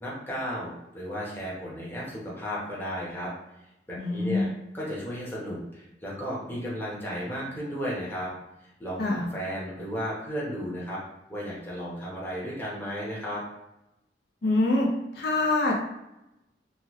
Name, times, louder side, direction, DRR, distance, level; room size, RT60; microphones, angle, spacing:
voice 1, 0.0-3.3 3.9-8.3 8.6-11.0 11.3-13.4, equal, 10° left, -6 dB, 0.9 m, -34 dB
voice 2, 4.0-4.5 9.0-9.2 14.4-14.9 15.1-15.7, left 2 dB, 65° left, -2 dB, 0.5 m, -24 dB
3.1 x 2.2 x 3.1 m, 0.92 s
head